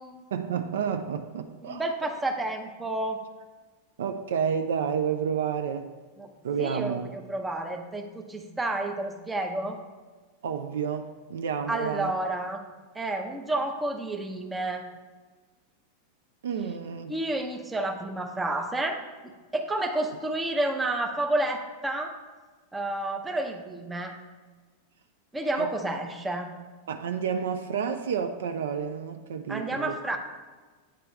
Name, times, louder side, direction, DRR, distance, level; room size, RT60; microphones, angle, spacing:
voice 1, 0.3-1.9 4.0-5.9 6.4-7.1 10.4-12.1 16.4-17.2 25.6-25.7 26.9-30.0, right 7 dB, 60° right, 7 dB, 0.4 m, -30 dB
voice 2, 1.6-3.2 6.2-6.3 6.6-9.8 11.7-12.6 12.9-14.8 17.1-19.0 19.5-22.1 22.7-24.2 25.3-26.5 29.5-30.2, right 2 dB, 10° right, 4 dB, 0.6 m, -30 dB
8.8 x 3.3 x 3.2 m, 1.4 s
figure-of-eight pair, 90°, 0 cm